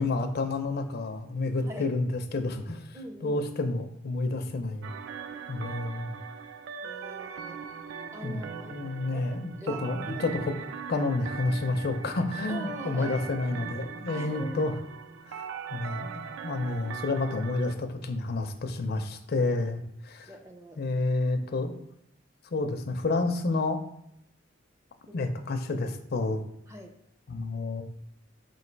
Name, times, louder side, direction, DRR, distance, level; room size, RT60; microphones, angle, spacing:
voice 1, 0.0-3.0 3.2-4.9 5.5-6.1 8.2-8.4 8.7-14.7 15.3-20.3 20.8-21.7 22.5-23.8 25.1-26.4 27.3-27.8, left 2 dB, 55° left, 7 dB, 0.4 m, -30 dB
voice 2, 1.6-1.9 2.9-3.5 6.8-7.6 8.1-8.8 9.1-10.3 12.5-13.3 14.1-14.8 20.3-20.8 25.1-25.3 26.7-27.0, right 1 dB, 15° right, 4 dB, 0.5 m, -43 dB
sound 1, 4.8-17.7, right 7 dB, 80° right, 0.3 m, -40 dB
3.9 x 2.7 x 4.5 m, 0.76 s
head